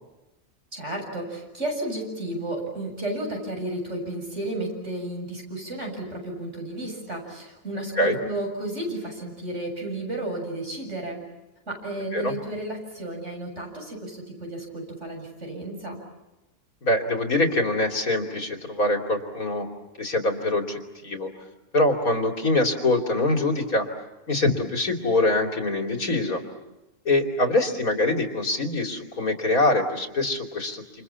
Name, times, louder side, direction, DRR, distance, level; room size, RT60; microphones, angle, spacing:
voice 1, 0.7-11.2 11.7-16.0, right 1 dB, 55° right, 1 dB, 7.6 m, -32 dB
voice 2, 16.8-19.7 20.0-21.3 21.7-23.9 24.3-26.4 27.1-30.8, left 2 dB, 85° left, 3 dB, 3.5 m, -24 dB
28.5 x 28.0 x 7.2 m, 1.0 s
omnidirectional pair, 1.5 m